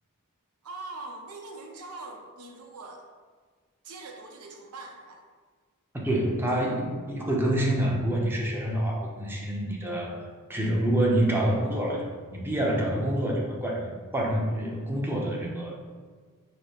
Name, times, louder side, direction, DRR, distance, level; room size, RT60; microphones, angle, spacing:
voice 1, 0.6-3.0 3.8-5.2, right 3 dB, 85° right, 2 dB, 0.7 m, -42 dB
voice 2, 5.9-10.1 10.5-13.9 14.1-15.7, right 1 dB, 10° right, -2 dB, 0.7 m, -27 dB
5.3 x 2.1 x 4.6 m, 1.6 s
head